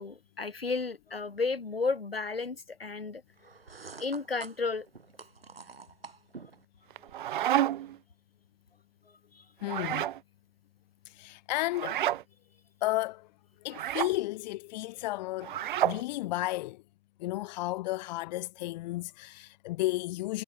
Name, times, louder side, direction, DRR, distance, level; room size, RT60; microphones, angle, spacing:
voice 1, 0.0-3.2 4.0-4.9 9.4-9.5, left 4 dB, 85° left, 7.0 m, -33 dB
sound 1, 3.4-6.6, right 5 dB, 80° right, 7.1 m, -48 dB
sound 2, 6.9-8.0 9.6-10.2 11.7-12.2 13.7-14.1 15.4-16.0, right 12 dB, 60° right, 1.2 m, -29 dB
voice 2, 9.6-10.1 11.1-12.0 12.8-13.3 13.6-16.8 17.2-20.4, left 18 dB, 45° left, 2.2 m, -33 dB
figure-of-eight pair, 105°, 29 cm